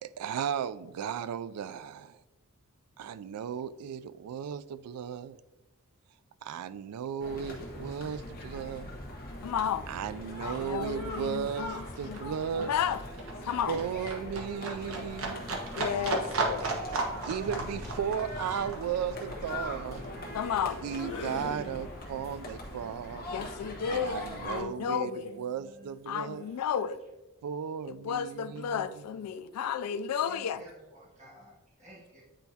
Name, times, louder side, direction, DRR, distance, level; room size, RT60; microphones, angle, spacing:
voice 1, 0.0-2.2 3.0-5.4 6.4-8.9 9.9-12.7 13.7-15.5 17.3-20.0 20.8-23.3 23.9-26.5 27.4-29.0, right 8 dB, 85° right, 0.3 m, -35 dB
Day Baseball Practice, 7.2-24.6, left 1 dB, 40° left, 1.2 m, -41 dB
Livestock farm animals working animals, 9.3-9.5 9.7-20.7 21.0-22.1 22.4-22.5, right 3 dB, 65° right, 1.0 m, -36 dB
voice 2, 9.4-9.9 10.4-12.2 12.6-13.0 13.4-13.8 15.8-16.8 20.3-20.8 23.3-25.3 26.1-27.0 28.0-30.6, left 7 dB, 85° left, 0.3 m, -32 dB
sound 1, 15.5-15.7 17.1-22.4, left 3 dB, 60° left, 0.9 m, -46 dB
voice 3, 24.6-26.9 29.3-32.2, equal, 30° right, 1.9 m, -54 dB
9.0 x 4.5 x 2.8 m
head